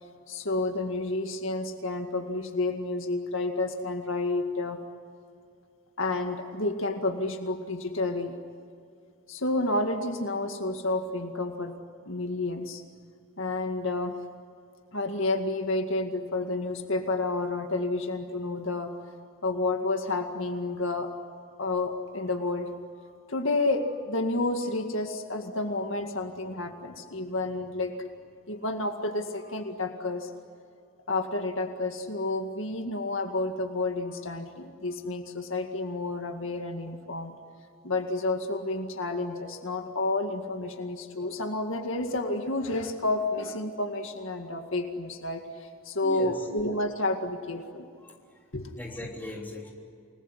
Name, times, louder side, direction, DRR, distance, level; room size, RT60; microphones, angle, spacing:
voice 1, 0.3-4.8 6.0-8.4 9.3-11.7 12.1-12.8 13.4-14.1 14.9-18.9 19.4-21.1 21.6-22.7 23.3-27.9 28.5-30.3 31.1-37.3 37.8-47.9 48.5-48.8, left 2 dB, 70° left, 5 dB, 2.1 m, -30 dB
voice 2, 46.0-46.5 48.0-48.4 48.8-49.7, left 1 dB, 10° left, -1 dB, 3.5 m, -39 dB
29.5 x 20.0 x 10.0 m, 2.3 s
head